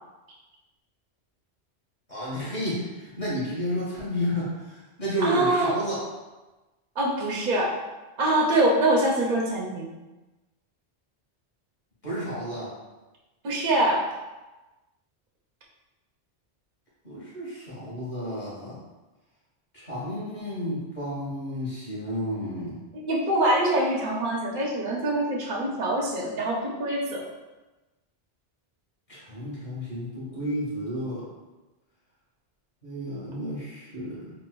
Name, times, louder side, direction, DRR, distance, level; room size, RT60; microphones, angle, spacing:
voice 1, 2.1-6.0 12.0-12.7 17.0-18.8 19.7-22.8 29.1-31.2 32.8-34.3, equal, 40° left, -8 dB, 1.5 m, -31 dB
voice 2, 5.2-5.7 7.0-7.7 8.2-9.9 13.4-14.0 22.9-27.2, right 1 dB, 55° right, -3 dB, 0.6 m, -24 dB
4.1 x 2.5 x 2.2 m, 1.1 s
omnidirectional pair, 1.1 m